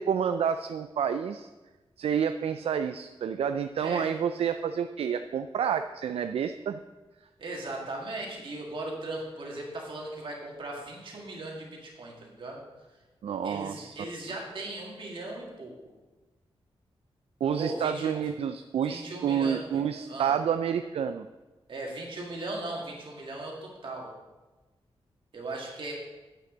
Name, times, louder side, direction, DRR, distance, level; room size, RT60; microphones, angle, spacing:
voice 1, 0.0-1.5 2.0-6.8 13.2-14.0 17.4-21.3, right 8 dB, 80° right, 9 dB, 0.3 m, -29 dB
voice 2, 3.8-4.1 7.4-12.6 13.4-15.8 17.6-18.3 18.8-19.8 20.1-20.3 21.7-24.1 25.3-25.9, right 2 dB, 60° right, -1 dB, 2.2 m, -38 dB
9.4 x 8.5 x 3.9 m, 1.2 s
wide cardioid pair, 140°, 10 cm